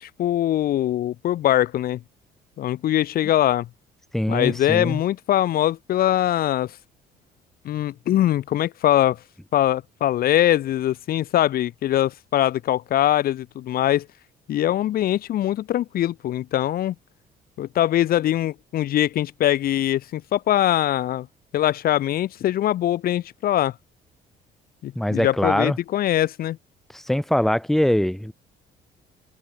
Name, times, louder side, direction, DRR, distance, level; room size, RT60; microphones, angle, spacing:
voice 1, 0.0-2.0 2.6-3.7 4.3-6.8 7.6-9.2 9.5-14.1 14.5-16.9 17.6-21.3 21.5-23.7 24.8-26.6, left 12 dB, 60° left, 1.3 m, -22 dB
voice 2, 4.1-5.0 24.9-25.8 26.9-28.3, equal, ahead, 1.6 m, -22 dB
cardioid pair, 110°, 17 cm